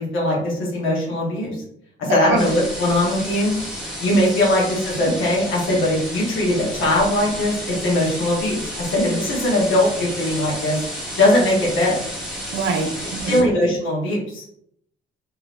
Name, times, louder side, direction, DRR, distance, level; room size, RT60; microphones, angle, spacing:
voice 1, 0.0-1.6 2.0-3.5 4.0-10.8 11.2-12.0 13.3-14.4, left 1 dB, 85° left, -3 dB, 1.0 m, -20 dB
voice 2, 2.1-2.4 12.5-13.5, right 4 dB, 65° right, 4 dB, 0.5 m, -25 dB
sound 1, 2.4-13.4, equal, 5° right, 1.3 m, -31 dB
3.3 x 2.8 x 2.4 m, 0.69 s
cardioid pair, 90°, 20 cm